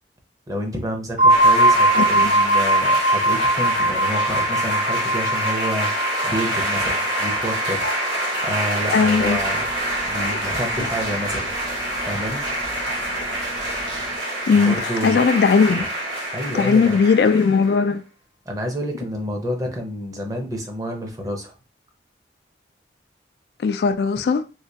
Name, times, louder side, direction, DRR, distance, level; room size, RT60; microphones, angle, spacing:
voice 1, 0.5-9.7 10.0-11.5 12.1-12.4 14.5-15.2 15.8-15.9 16.3-17.0 18.5-21.6, equal, 20° right, 0.6 m, -29 dB
sound 1, 1.2-10.8, right 1 dB, 45° right, 0.8 m, -22 dB
sound 2, 1.3-17.7, right 1 dB, 90° right, 1.8 m, -26 dB
voice 2, 1.9-2.3 8.9-9.4 14.5-15.9 16.5-18.0 23.6-24.4, left 5 dB, 65° left, 0.3 m, -18 dB
sound 3, 9.0-14.2, equal, 70° right, 1.1 m, -40 dB
3.2 x 2.9 x 2.7 m
head